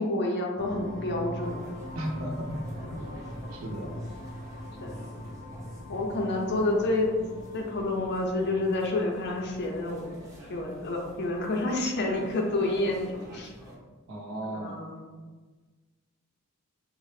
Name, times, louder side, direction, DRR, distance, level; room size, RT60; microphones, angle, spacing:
voice 1, 0.0-1.7 3.8-4.0 4.8-5.0 5.9-7.1 7.5-10.1 10.5-13.5 14.4-15.2, left 2 dB, 50° left, 1 dB, 0.5 m, -29 dB
sound 1, 0.6-11.1, equal, 30° right, 0.8 m, -42 dB
sound 2, 1.4-13.8, equal, 15° right, 0.5 m, -48 dB
voice 2, 1.9-3.0 3.5-3.9 14.1-14.7, equal, 70° right, 1 dB, 0.5 m, -35 dB
2.8 x 2.0 x 3.1 m, 1.3 s
head